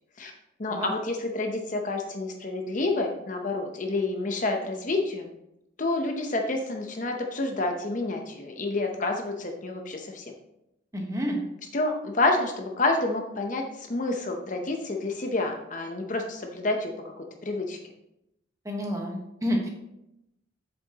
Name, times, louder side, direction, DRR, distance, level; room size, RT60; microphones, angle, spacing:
voice 1, 0.6-5.3 5.8-10.2 11.7-17.8, left 2 dB, 40° left, 3 dB, 0.8 m, -29 dB
voice 2, 10.9-11.4 18.6-19.7, equal, 15° right, 0 dB, 1.2 m, -29 dB
8.2 x 6.8 x 2.9 m, 0.84 s
head